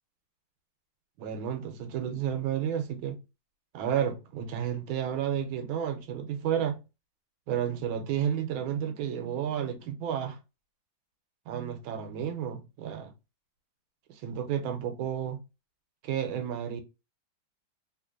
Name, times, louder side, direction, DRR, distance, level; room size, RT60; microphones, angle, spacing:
voice 1, 1.2-3.2 3.7-6.8 7.5-10.4 11.5-13.1 14.1-15.4 16.0-16.8, right 9 dB, 85° right, 1.4 m, -31 dB
3.2 x 2.5 x 2.4 m
omnidirectional pair, 2.2 m